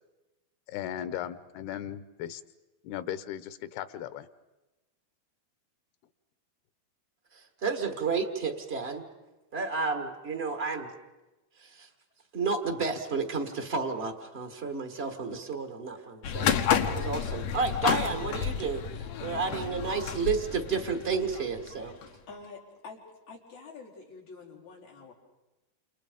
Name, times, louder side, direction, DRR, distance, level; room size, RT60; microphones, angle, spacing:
voice 1, 0.7-2.4 2.8-4.3, left 11 dB, 90° left, 14 dB, 2.9 m, -37 dB
voice 2, 7.6-9.0 9.5-10.9 11.8-11.9 12.3-16.5 16.8-18.8 19.2-21.9, right 4 dB, 75° right, 5 dB, 0.5 m, -31 dB
sound 1, 16.2-22.1, left 8 dB, 65° left, 1.9 m, -31 dB
voice 3, 21.8-25.1, left 4 dB, 50° left, -4 dB, 5.8 m, -48 dB
29.0 x 29.0 x 5.2 m, 1.1 s
omnidirectional pair, 4.4 m